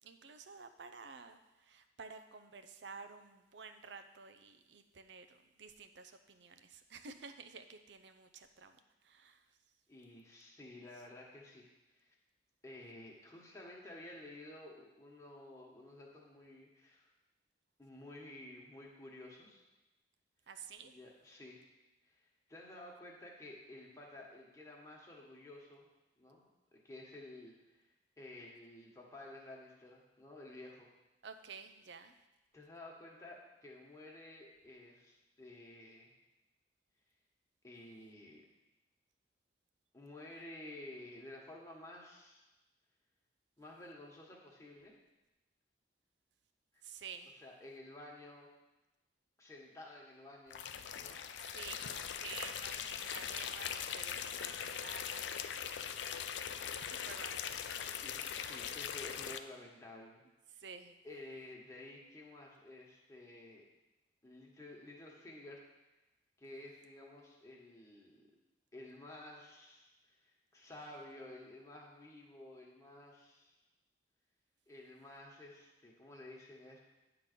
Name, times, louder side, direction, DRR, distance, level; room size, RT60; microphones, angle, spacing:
voice 1, 0.0-9.8 10.9-11.0 20.5-21.0 31.2-32.3 46.8-47.5 51.4-56.0 56.7-57.7 60.5-61.0, right 5 dB, 75° right, 8 dB, 0.6 m, -52 dB
voice 2, 9.9-11.7 12.0-12.1 12.6-17.1 17.8-19.6 20.8-21.6 22.1-22.2 22.5-25.9 26.2-27.9 28.2-30.9 32.5-36.1 37.6-38.4 39.9-42.4 43.6-44.9 47.4-48.5 49.4-50.6 50.9-51.2 58.0-60.2 60.5-60.6 61.0-63.6 64.2-65.6 66.4-68.3 68.7-73.5 74.7-76.8, left 1 dB, 15° left, -2 dB, 1.4 m, -52 dB
sound 1, 50.5-59.4, left 8 dB, 80° left, 0.4 m, -41 dB
9.8 x 3.9 x 6.7 m, 1.0 s
head